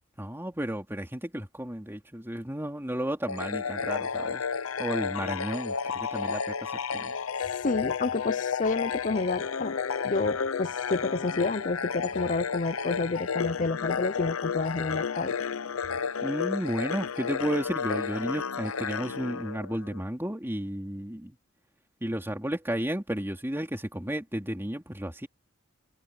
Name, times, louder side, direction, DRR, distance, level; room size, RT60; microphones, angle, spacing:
voice 1, 0.2-4.4 4.8-7.1 16.2-21.4 22.0-25.3, equal, 10° right, 3.2 m, -33 dB
sound 1, 3.3-20.0, left 6 dB, 85° left, 0.7 m, -32 dB
voice 2, 7.6-15.3, left 3 dB, 40° left, 0.7 m, -30 dB
head